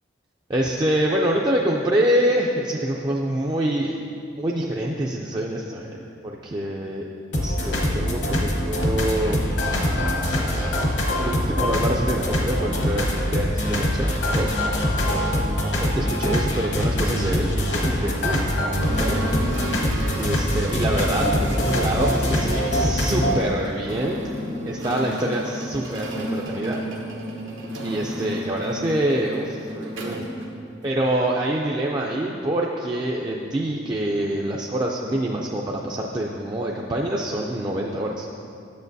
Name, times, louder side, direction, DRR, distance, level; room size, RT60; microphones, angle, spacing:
voice 1, 0.5-4.0 4.4-7.1 7.4-9.4 9.7-10.8 11.2-14.6 15.8-18.5 18.9-19.2 20.1-24.2 24.7-26.8 27.8-30.2 30.8-38.3, right 1 dB, 20° right, -2 dB, 0.3 m, -26 dB
sound 1, 7.3-23.3, left 1 dB, 65° left, 0.9 m, -23 dB
sound 2, 18.8-31.1, equal, 85° right, 0.9 m, -32 dB
8.4 x 7.0 x 2.6 m, 2.7 s
head